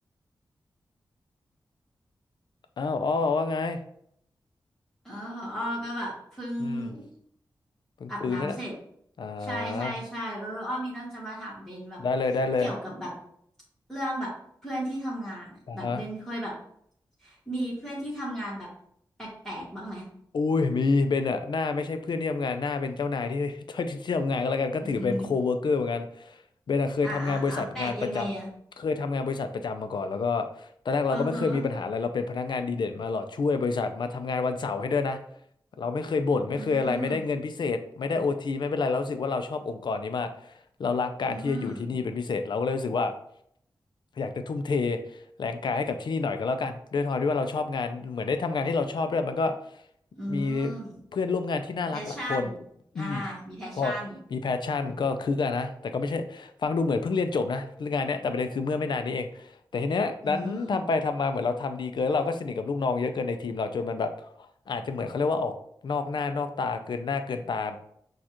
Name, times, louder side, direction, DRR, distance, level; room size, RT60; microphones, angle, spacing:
voice 1, 2.8-3.8 6.6-6.9 8.0-8.6 9.2-9.9 12.0-12.7 15.7-16.0 20.3-26.4 26.7-28.3 28.8-35.2 35.8-40.5 40.8-43.1 44.2-49.5 50.3-50.7 51.1-52.5 52.9-53.2 53.8-53.9 54.3-64.1 64.7-65.5 65.8-67.8, left 4 dB, 65° left, 8 dB, 0.4 m, -28 dB
voice 2, 5.0-7.1 8.1-8.7 9.4-12.0 12.6-13.1 13.9-14.3 14.6-15.5 15.7-16.5 17.2-18.7 19.2-20.1 24.8-25.3 27.0-28.5 31.1-31.6 36.5-37.2 41.3-41.9 50.1-51.0 51.9-52.6 52.9-54.2 60.2-60.8, equal, 5° left, -8 dB, 1.4 m, -35 dB
6.3 x 2.4 x 2.9 m, 0.69 s
wide cardioid pair, 100°, 8 cm